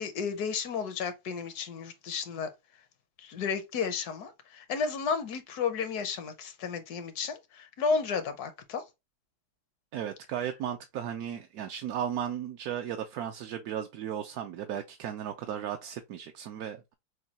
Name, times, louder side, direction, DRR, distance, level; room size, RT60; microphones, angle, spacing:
voice 1, 0.0-2.5 3.2-8.8, left 5 dB, 70° left, 1.3 m, -32 dB
voice 2, 9.9-16.9, right 9 dB, 75° right, 1.0 m, -35 dB
6.3 x 2.2 x 2.8 m
omnidirectional pair, 1.7 m